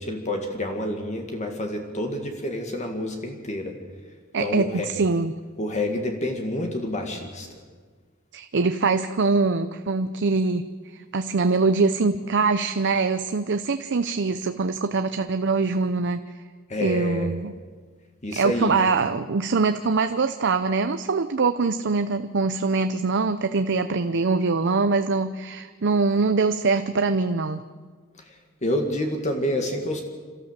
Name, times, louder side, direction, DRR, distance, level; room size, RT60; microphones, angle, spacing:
voice 1, 0.0-3.8 4.4-4.9 5.6-7.6 16.7-17.3 18.2-18.8 28.2-30.0, left 1 dB, 35° left, 3 dB, 1.9 m, -28 dB
voice 2, 4.3-5.3 8.3-10.6 11.1-16.2 16.8-17.5 18.4-27.6, right 4 dB, 55° right, 9 dB, 0.7 m, -23 dB
28.5 x 13.5 x 7.5 m, 1.5 s
head